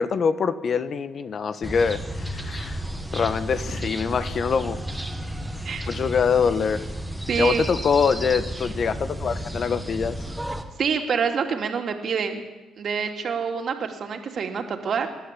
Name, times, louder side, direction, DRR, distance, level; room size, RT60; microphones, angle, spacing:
voice 1, 0.0-2.8 3.1-4.8 5.9-6.9 7.4-10.3, left 6 dB, 50° left, 13 dB, 1.3 m, -24 dB
sound 1, 1.6-10.6, equal, ahead, 2.1 m, -32 dB
voice 2, 7.3-7.6 10.8-12.4 12.8-15.1, right 6 dB, 55° right, 5 dB, 2.9 m, -26 dB
26.5 x 12.0 x 8.6 m, 1.1 s
cardioid pair, 90°, 0 cm